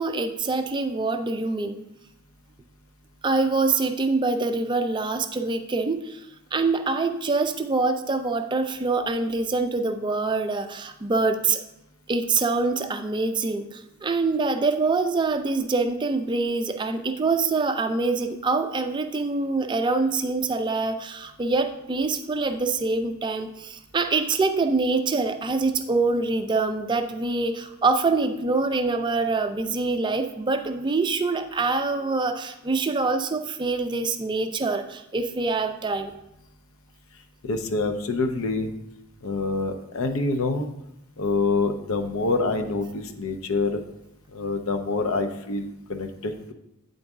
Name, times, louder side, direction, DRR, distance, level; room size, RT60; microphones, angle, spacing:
voice 1, 0.0-1.8 3.2-6.2 6.5-11.6 12.1-36.1, right 3 dB, 20° right, 7 dB, 0.4 m, -25 dB
voice 2, 37.4-38.7 39.2-40.7 41.2-43.8 44.3-46.5, left 3 dB, 70° left, 6 dB, 0.6 m, -26 dB
9.0 x 3.9 x 3.5 m, 0.87 s
head